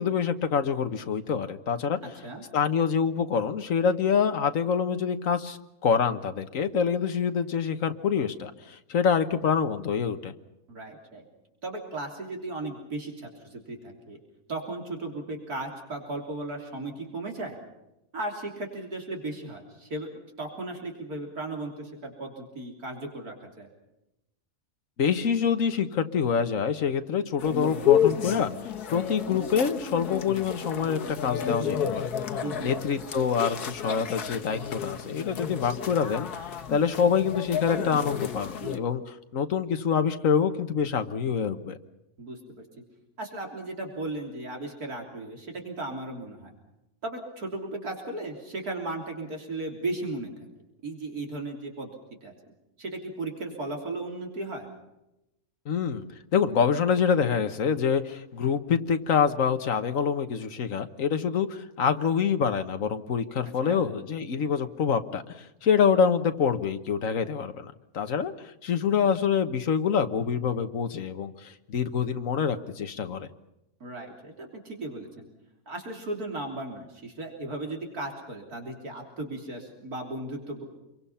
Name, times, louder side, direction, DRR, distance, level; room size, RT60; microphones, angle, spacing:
voice 1, 0.0-2.0 2.5-10.3 25.0-28.5 28.9-32.1 32.6-36.3 36.7-39.0 39.3-41.8 55.7-56.1 56.3-68.3 68.6-73.3, left 6 dB, 60° left, 8 dB, 1.6 m, -26 dB
voice 2, 10.7-11.2 11.6-14.2 14.5-17.6 18.1-23.7 32.4-32.7 42.2-42.4 43.2-46.5 47.0-50.3 50.8-51.9 52.2-52.3 52.8-54.7 63.6-63.8 73.8-75.2 75.7-80.6, right 2 dB, 75° right, 2 dB, 3.8 m, -36 dB
sound 1, 27.4-38.8, left 8 dB, 85° left, 1.8 m, -31 dB
27.5 x 23.0 x 5.7 m, 0.90 s
omnidirectional pair, 1.6 m